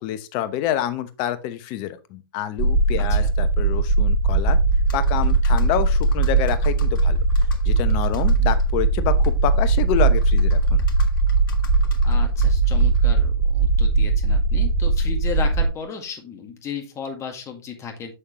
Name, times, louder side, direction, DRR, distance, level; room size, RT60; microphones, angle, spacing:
voice 1, 0.0-4.6 4.9-7.2 7.6-10.8, left 12 dB, 40° left, 0.9 m, -27 dB
sound 1, 2.6-15.7, right 3 dB, 15° right, 2.1 m, -19 dB
Computer keyboard, 4.7-13.3, left 7 dB, 60° left, 1.5 m, -41 dB
voice 2, 12.0-18.1, left 6 dB, 25° left, 1.8 m, -34 dB
7.1 x 6.5 x 3.0 m
hypercardioid pair, 115°, 12 cm